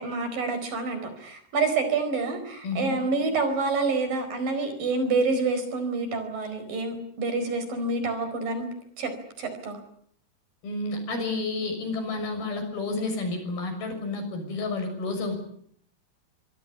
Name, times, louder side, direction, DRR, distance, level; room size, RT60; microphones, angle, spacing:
voice 1, 0.0-8.7 9.0-9.1 9.4-9.8, right 3 dB, 65° right, 9 dB, 6.2 m, -27 dB
voice 2, 2.6-2.9 10.6-15.4, left 3 dB, 75° left, 6 dB, 8.3 m, -30 dB
25.5 x 17.0 x 10.0 m, 0.65 s
omnidirectional pair, 4.3 m